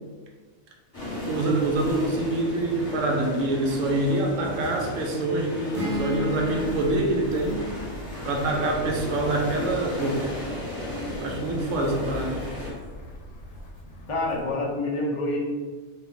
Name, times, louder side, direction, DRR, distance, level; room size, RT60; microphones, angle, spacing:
sound 1, 0.9-12.7, left 1 dB, 20° left, 1.2 m, -35 dB
voice 1, 1.3-7.7 8.2-10.4 11.1-12.4, right 2 dB, 80° right, 0 dB, 1.0 m, -26 dB
sound 2, 5.7-9.5, left 2 dB, 55° right, 0.7 m, -35 dB
sound 3, 5.9-14.5, left 2 dB, 80° left, 1.0 m, -41 dB
voice 2, 14.1-15.4, left 2 dB, 60° left, -3 dB, 0.3 m, -27 dB
2.5 x 2.2 x 3.7 m, 1.4 s
omnidirectional pair, 1.4 m